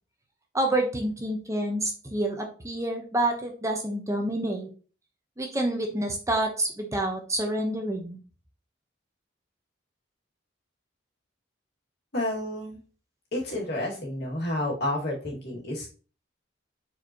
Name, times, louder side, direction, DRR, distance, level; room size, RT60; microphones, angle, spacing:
voice 1, 0.5-4.7 5.4-8.2, right 1 dB, 15° right, 3 dB, 1.0 m, -28 dB
voice 2, 12.1-12.8 13.3-15.9, left 1 dB, 60° left, -3 dB, 2.2 m, -30 dB
7.7 x 4.5 x 3.0 m, 0.38 s
head